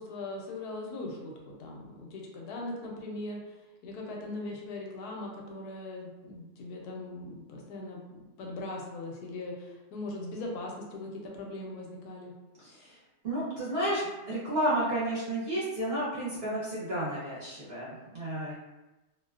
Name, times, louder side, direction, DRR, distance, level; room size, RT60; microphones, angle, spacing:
voice 1, 0.0-3.6 3.8-12.3, left 2 dB, 85° left, 0 dB, 1.1 m, -40 dB
voice 2, 12.6-13.0 13.2-14.0 14.3-18.5, right 1 dB, 55° right, -8 dB, 0.7 m, -31 dB
2.6 x 2.1 x 2.3 m, 1.1 s
omnidirectional pair, 1.6 m